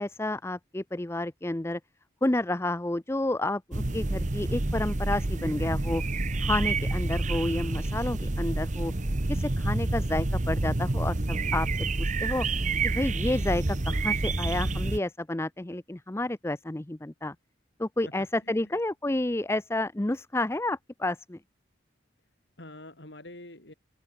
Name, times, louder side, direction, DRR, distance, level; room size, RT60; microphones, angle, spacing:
voice 1, 0.0-1.8 2.2-6.0 6.4-8.9 9.3-11.7 12.0-17.3 17.8-21.4, left 1 dB, 15° left, 0.6 m, -30 dB
sound 1, 3.7-15.0, right 2 dB, 40° right, 1.1 m, -28 dB
voice 2, 18.0-18.7 22.6-23.7, left 1 dB, 70° left, 4.6 m, -46 dB
open air
head